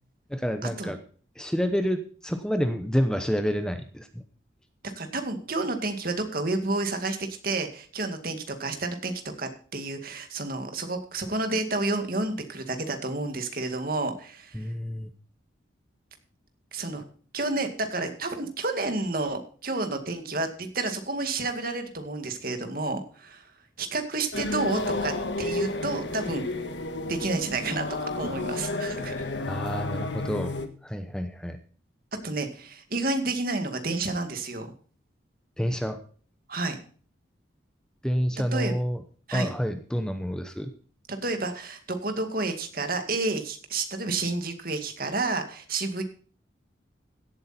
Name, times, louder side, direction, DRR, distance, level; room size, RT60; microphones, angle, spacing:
voice 1, 0.3-1.0 1.4-4.2 14.5-15.1 29.5-30.5 30.8-31.6 35.6-36.0 38.0-39.0 39.3-40.7, equal, 5° left, 8 dB, 0.8 m, -28 dB
voice 2, 5.0-14.6 16.7-17.0 17.3-23.5 23.8-26.4 27.1-29.2 32.2-34.7 36.5-36.8 38.5-38.7 39.3-39.5 41.1-46.0, right 2 dB, 50° right, 6 dB, 2.1 m, -30 dB
sound 1, 24.3-30.7, left 2 dB, 70° left, 1.5 m, -31 dB
16.5 x 8.3 x 4.3 m, 0.43 s
head